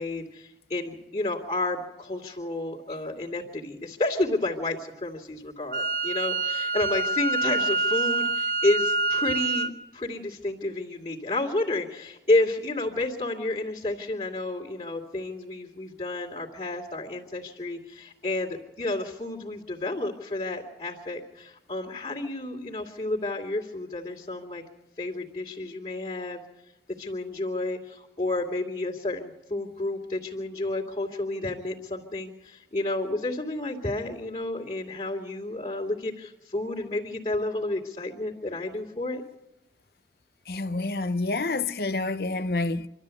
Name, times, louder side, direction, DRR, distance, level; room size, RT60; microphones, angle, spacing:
voice 1, 0.0-24.6 25.0-26.4 27.0-39.2, left 2 dB, 35° left, 2.5 m, -30 dB
Wind instrument woodwind instrument, 5.7-9.7, right 3 dB, 50° right, 0.8 m, -26 dB
voice 2, 40.5-42.9, left 3 dB, 60° left, 0.8 m, -28 dB
25.5 x 13.0 x 8.3 m
head